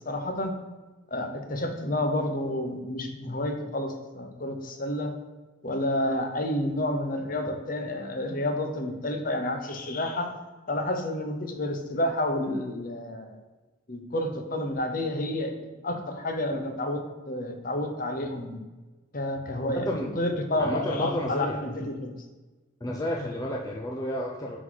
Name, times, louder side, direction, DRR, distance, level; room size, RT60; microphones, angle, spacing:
voice 1, 0.0-0.5 1.1-5.1 5.6-10.3 10.7-13.4 13.9-18.6 19.1-19.9 20.2-22.1, left 1 dB, 40° left, 5 dB, 0.9 m, -30 dB
voice 2, 19.7-20.1 20.6-21.6 22.8-24.6, left 1 dB, 15° left, -1 dB, 0.5 m, -31 dB
9.5 x 4.1 x 4.0 m, 1.2 s
head